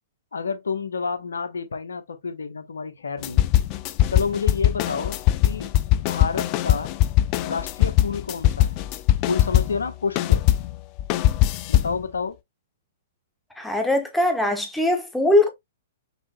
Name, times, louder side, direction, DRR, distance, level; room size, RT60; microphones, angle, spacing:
voice 1, 0.3-3.4 4.1-6.9 7.4-8.8 9.3-10.4 11.7-12.4, left 5 dB, 80° left, 1.0 m, -29 dB
sound 1, 3.2-9.9 10.2-12.0, left 14 dB, 40° left, 0.5 m, -21 dB
voice 2, 13.5-15.5, left 1 dB, 5° left, 1.2 m, -21 dB
5.9 x 3.8 x 2.2 m
hypercardioid pair, 120°, 0 cm